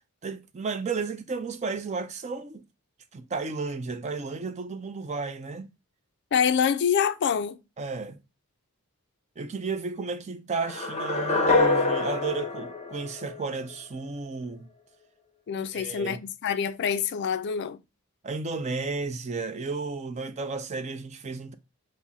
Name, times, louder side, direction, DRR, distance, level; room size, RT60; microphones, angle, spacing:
voice 1, 0.2-2.6 3.1-5.7 7.8-8.2 9.4-14.7 15.7-16.2 18.2-21.5, right 4 dB, 30° right, 0.4 m, -33 dB
voice 2, 6.3-7.6 15.5-17.8, left 7 dB, 50° left, 0.3 m, -26 dB
sound 1, 10.6-13.7, left 3 dB, 30° left, 0.7 m, -26 dB
5.5 x 2.1 x 3.5 m
head